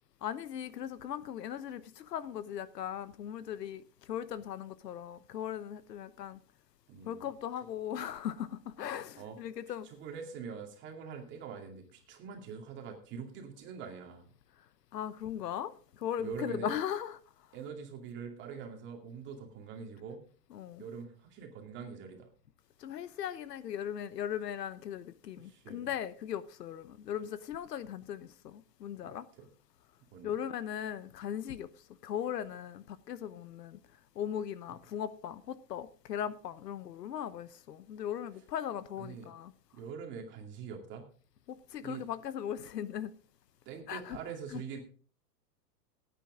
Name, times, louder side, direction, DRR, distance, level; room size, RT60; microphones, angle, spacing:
voice 1, 0.2-6.4 7.0-9.9 14.9-17.2 20.5-20.8 22.8-29.3 30.2-31.7 32.0-33.8 34.1-39.5 41.5-43.1 43.9-44.2 44.5-44.6, left 9 dB, 75° left, 1.0 m, -38 dB
voice 2, 6.9-7.3 9.2-9.4 9.8-14.3 16.2-16.7 17.5-20.2 20.8-22.3 25.4-25.9 29.0-29.5 30.1-30.4 39.0-39.3 39.7-41.1 41.8-42.0 43.7-44.8, right 6 dB, 20° right, 2.4 m, -44 dB
16.5 x 9.2 x 3.7 m
hypercardioid pair, 150°, 50 cm